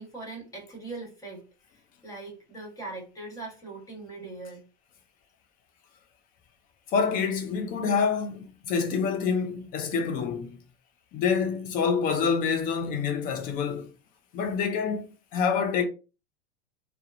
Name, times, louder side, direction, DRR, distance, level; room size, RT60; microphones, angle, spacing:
voice 1, 0.0-1.4 1.7-4.6, right 3 dB, 10° left, 1.1 m, -41 dB
voice 2, 6.9-10.6 11.1-13.9 14.3-15.8, left 6 dB, 25° left, 0.4 m, -27 dB
2.9 x 2.0 x 2.4 m
supercardioid pair, 125°, 33 cm